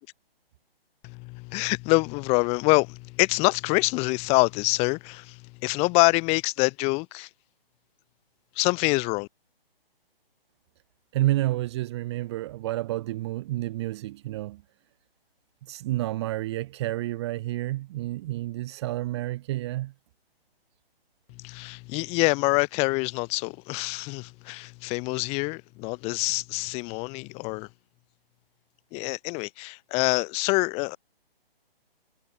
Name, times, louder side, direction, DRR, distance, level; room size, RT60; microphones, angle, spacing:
voice 1, 1.0-7.3 8.6-9.3 21.4-27.7 28.9-31.0, left 28 dB, 20° left, 7.6 m, -25 dB
voice 2, 11.1-14.6 15.7-19.9, right 16 dB, 25° right, 2.1 m, -29 dB
hypercardioid pair, 160°, 30 cm